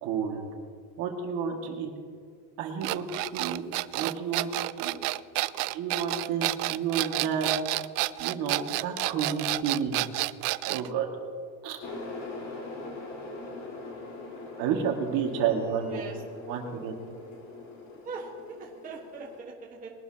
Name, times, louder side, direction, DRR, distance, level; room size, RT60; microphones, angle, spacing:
voice 1, 0.0-0.5 1.0-1.9 2.6-3.6 3.9-4.5 4.8-5.0 5.7-7.5 8.2-10.0 10.7-11.1 11.6-11.8 14.6-16.0 16.5-16.9, right 7 dB, 45° right, 1 dB, 2.2 m, -30 dB
sound 1, 2.8-10.9, right 20 dB, 85° right, 0.6 m, -30 dB
sound 2, 11.8-19.4, left 2 dB, 35° left, 2.4 m, -42 dB
voice 2, 15.9-16.2 18.0-19.9, right 4 dB, 20° right, -3 dB, 1.6 m, -41 dB
21.5 x 11.5 x 3.0 m, 2.1 s
supercardioid pair, 160°, 46 cm